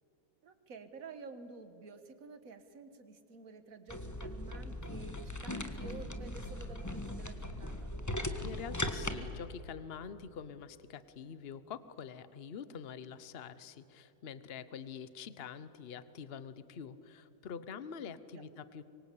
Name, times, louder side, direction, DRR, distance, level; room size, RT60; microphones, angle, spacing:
voice 1, 0.4-7.9 18.3-18.4, right 4 dB, 45° right, 10 dB, 1.7 m, -51 dB
sound 1, 3.9-9.2, left 1 dB, 10° left, 1.0 m, -39 dB
voice 2, 8.3-18.8, left 7 dB, 50° left, 14 dB, 0.7 m, -46 dB
25.5 x 23.5 x 8.5 m, 2.9 s
omnidirectional pair, 2.3 m